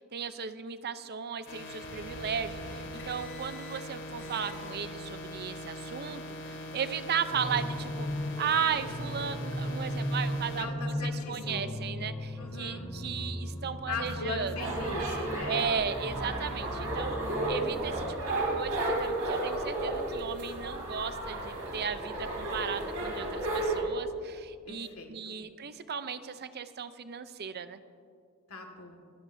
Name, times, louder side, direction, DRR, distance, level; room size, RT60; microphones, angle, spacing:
voice 1, 0.1-8.1 8.4-14.5 15.5-17.1 17.5-27.8, right 7 dB, 50° right, 11 dB, 0.6 m, -35 dB
sound 1, 1.5-10.6, left 1 dB, 60° left, 2.7 m, -41 dB
sound 2, 7.3-18.1, equal, 10° left, 1.0 m, -37 dB
voice 2, 10.5-11.7 12.4-12.8 13.9-15.6 24.7-25.4 28.5-29.0, left 3 dB, 75° left, 3 dB, 2.0 m, -39 dB
sound 3, 14.6-23.8, right 2 dB, 70° right, 3.2 m, -33 dB
26.0 x 13.0 x 2.7 m, 2.3 s
head